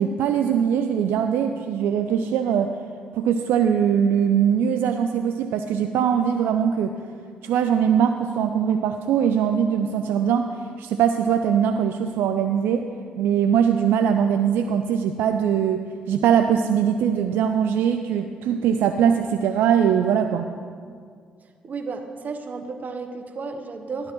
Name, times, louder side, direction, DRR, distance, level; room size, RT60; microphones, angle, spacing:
voice 1, 0.0-2.7 3.1-6.9 7.4-12.9 13.2-15.8 16.1-20.5, right 8 dB, 70° right, 7 dB, 0.4 m, -21 dB
voice 2, 21.4-24.1, right 4 dB, 50° right, 6 dB, 0.9 m, -33 dB
13.0 x 11.0 x 3.0 m, 2.1 s
hypercardioid pair, 50°, 4 cm